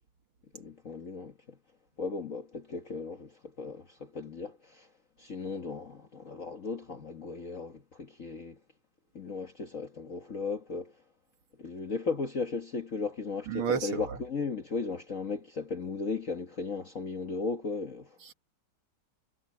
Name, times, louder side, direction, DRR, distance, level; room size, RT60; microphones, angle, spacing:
voice 1, 0.5-1.6 2.0-4.9 5.2-8.6 9.1-10.9 11.6-18.3, left 4 dB, 40° left, 1.6 m, -36 dB
voice 2, 13.5-14.2 18.2-18.3, right 6 dB, 75° right, 2.7 m, -31 dB
omnidirectional pair, 2.3 m